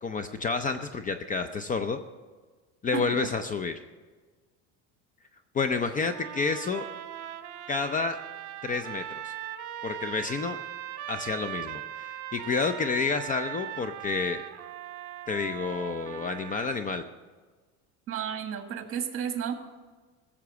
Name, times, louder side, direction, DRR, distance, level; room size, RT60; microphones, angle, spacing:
voice 1, 0.0-2.0 2.8-3.7 5.5-6.9 7.7-8.2 8.6-9.3 9.8-10.6 11.1-14.4 15.3-17.0, left 4 dB, 25° left, 9 dB, 0.5 m, -29 dB
sound 1, 6.0-17.0, right 12 dB, 55° right, 1.2 m, -40 dB
voice 2, 18.1-19.5, right 8 dB, 40° right, 6 dB, 1.7 m, -32 dB
15.5 x 7.3 x 6.9 m, 1.4 s
supercardioid pair, 125°, 35 cm